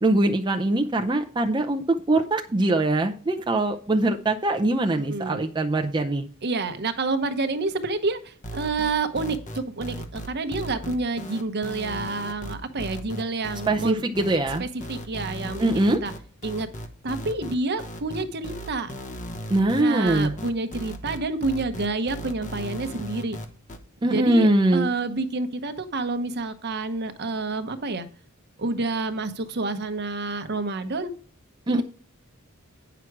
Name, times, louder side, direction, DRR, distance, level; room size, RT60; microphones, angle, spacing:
voice 1, 0.0-6.3 13.7-14.6 15.6-16.0 19.5-20.3 24.0-24.9 31.7-31.8, right 2 dB, 20° right, 3 dB, 0.6 m, -22 dB
voice 2, 4.9-5.4 6.4-14.0 14.6-16.1 16.4-16.7 17.0-19.0 19.8-23.4 24.0-28.1 28.6-31.1 31.7-31.8, right 3 dB, 50° right, 10 dB, 0.9 m, -28 dB
sound 1, 8.4-23.8, equal, 35° left, 1.0 m, -36 dB
9.1 x 6.0 x 4.7 m, 0.42 s
head